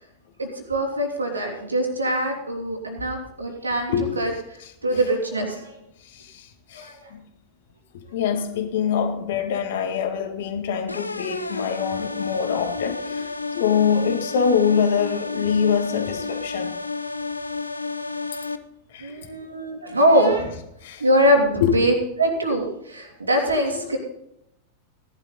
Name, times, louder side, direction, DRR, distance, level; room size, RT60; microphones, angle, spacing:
voice 1, 0.4-4.3 4.8-5.7 6.7-7.0 19.0-20.6 21.0-24.0, right 1 dB, 80° right, 2 dB, 2.9 m, -23 dB
voice 2, 3.9-4.2 4.6-4.7 6.0-7.2 7.9-16.8 18.9-19.2 20.8-21.1 21.6-21.9 23.7-23.8, left 7 dB, 55° left, 5 dB, 2.0 m, -24 dB
sound 1, 10.9-18.6, left 4 dB, 80° left, 0.6 m, -31 dB
17.0 x 11.0 x 3.9 m, 0.80 s
figure-of-eight pair, 90°, 0 cm